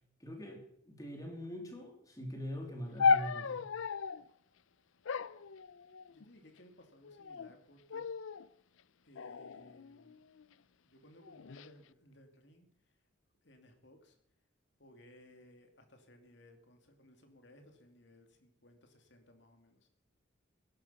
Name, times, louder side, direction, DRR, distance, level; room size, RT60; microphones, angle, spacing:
voice 1, 0.2-3.7, equal, 15° left, 2 dB, 3.1 m, -43 dB
sound 1, 3.0-4.3 5.1-6.3 7.0-7.5 7.9-8.5 9.2-10.4 11.2-11.7, left 5 dB, 75° left, 0.5 m, -34 dB
voice 2, 6.1-8.1 9.0-10.2 10.8-12.9 13.4-14.2 14.8-19.9, left 1 dB, 60° left, 5 dB, 2.7 m, -60 dB
16.5 x 12.5 x 5.7 m, 0.68 s
head